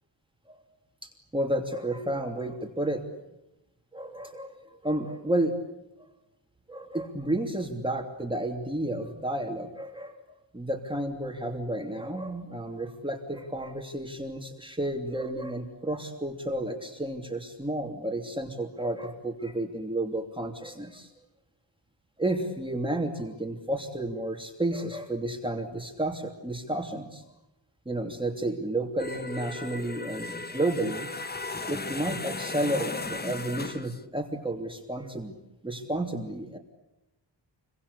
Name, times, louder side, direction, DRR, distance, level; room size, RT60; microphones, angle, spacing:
voice 1, 1.0-3.0 3.9-5.5 6.7-10.2 10.5-21.1 22.2-27.2 27.8-31.1 31.7-35.4 35.6-36.6, right 1 dB, 10° right, 3 dB, 3.0 m, -31 dB
sound 1, 29.0-34.0, left 3 dB, 20° left, 1.3 m, -36 dB
29.0 x 24.5 x 8.4 m, 0.93 s
wide cardioid pair, 165°, 46 cm